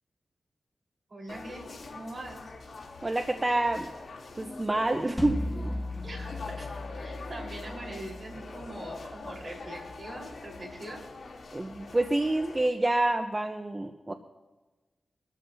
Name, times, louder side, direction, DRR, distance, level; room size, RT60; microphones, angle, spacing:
voice 1, 1.1-2.5 6.0-6.6 7.0-11.0, right 1 dB, 50° right, -1 dB, 4.4 m, -42 dB
sound 1, 1.3-12.7, left 3 dB, 70° left, 3.1 m, -44 dB
voice 2, 3.0-3.9 4.4-5.8 11.5-14.1, right 2 dB, 25° right, 6 dB, 0.8 m, -28 dB
sound 2, 5.2-10.3, left 1 dB, 10° left, 2.0 m, -38 dB
24.0 x 13.5 x 2.8 m, 1.2 s
wide cardioid pair, 85°, 0 cm